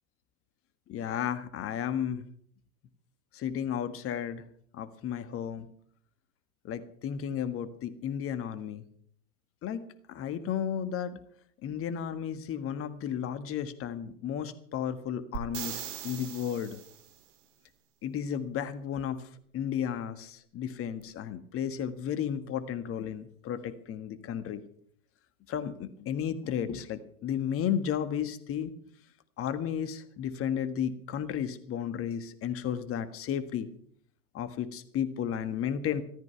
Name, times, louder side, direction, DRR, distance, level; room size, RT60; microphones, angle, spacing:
voice 1, 0.9-2.2 3.3-4.4 4.8-5.7 6.6-8.8 9.6-9.8 10.1-11.1 11.6-16.8 18.0-19.2 19.5-24.6 25.5-28.7 29.4-33.7 34.3-36.0, left 9 dB, 30° left, 12 dB, 1.5 m, -33 dB
sound 1, 15.3-17.2 21.0-21.1, right 10 dB, 55° right, 2.3 m, -40 dB
14.0 x 13.5 x 5.8 m, 0.62 s
hypercardioid pair, 100°, 43 cm